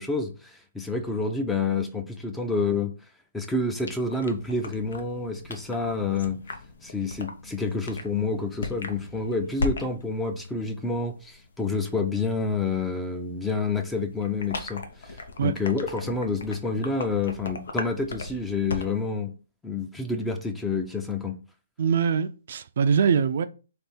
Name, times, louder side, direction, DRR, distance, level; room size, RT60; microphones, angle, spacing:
voice 1, 0.0-2.9 3.3-6.4 6.8-19.3 19.6-21.4, left 3 dB, 5° left, 0.6 m, -28 dB
sound 1, 3.8-19.1, left 3 dB, 75° left, 0.9 m, -38 dB
voice 2, 21.8-23.4, right 6 dB, 60° right, 0.5 m, -23 dB
3.5 x 3.4 x 4.4 m
hypercardioid pair, 150°, 0 cm